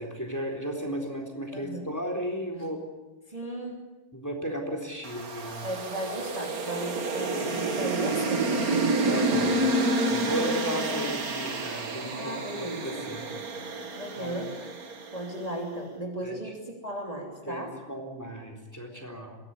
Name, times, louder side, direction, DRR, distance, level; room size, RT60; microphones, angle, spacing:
voice 1, 0.0-2.8 4.1-5.7 9.0-9.5 10.1-13.3 14.2-14.4 16.2-16.5 17.5-19.4, equal, 10° left, 2 dB, 3.7 m, -34 dB
voice 2, 1.5-1.9 3.3-3.8 5.6-8.8 12.1-13.1 13.9-14.7 15.1-17.8, right 1 dB, 20° right, 0 dB, 3.1 m, -36 dB
sound 1, 5.0-15.4, right 2 dB, 50° right, 2.2 m, -29 dB
23.5 x 16.5 x 9.7 m, 1.1 s
omnidirectional pair, 2.1 m